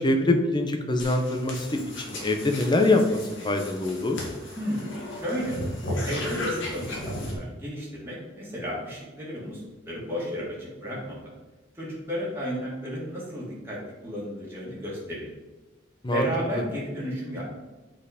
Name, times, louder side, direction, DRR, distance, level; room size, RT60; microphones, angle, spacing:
voice 1, 0.0-3.2 3.4-4.2 16.0-16.3, left 2 dB, 20° left, 5 dB, 0.7 m, -24 dB
sound 1, 1.0-7.3, left 1 dB, 70° left, 2.1 m, -35 dB
voice 2, 4.6-5.6 6.0-11.2 11.7-13.8 14.0-15.3 16.1-17.4, equal, 10° right, -6 dB, 2.0 m, -33 dB
7.7 x 4.6 x 5.0 m, 1.2 s
head